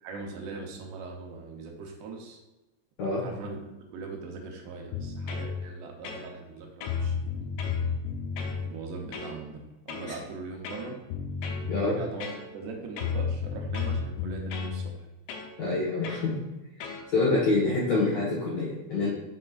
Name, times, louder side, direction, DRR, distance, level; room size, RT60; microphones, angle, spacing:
voice 1, 0.0-2.4 3.2-3.6 3.9-7.5 8.6-11.0 11.7-12.3 12.5-14.9, right 4 dB, 80° right, 1 dB, 3.0 m, -40 dB
sound 1, 4.9-5.5 6.0-6.5 6.8-8.6 9.1-9.4 9.9-10.2 10.6-11.7 12.2-12.7 13.0-14.8 15.3-15.5 16.0-16.3 16.8-17.0, left 6 dB, 80° left, 2.9 m, -32 dB
voice 2, 15.6-16.4 17.1-19.1, left 3 dB, 55° left, -7 dB, 2.0 m, -26 dB
7.1 x 6.4 x 2.5 m, 1.1 s
omnidirectional pair, 4.9 m